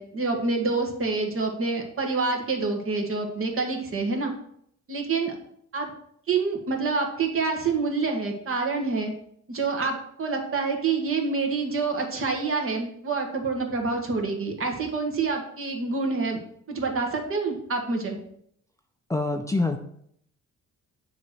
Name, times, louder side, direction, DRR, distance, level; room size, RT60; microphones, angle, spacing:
voice 1, 0.0-4.3 4.9-5.3 5.7-5.9 6.3-9.1 9.5-16.4 16.7-18.2, right 4 dB, 45° right, 2 dB, 1.6 m, -27 dB
voice 2, 19.1-19.8, left 2 dB, 10° left, 5 dB, 0.5 m, -25 dB
7.4 x 3.1 x 6.1 m, 0.68 s
cardioid pair, 90°, 30 cm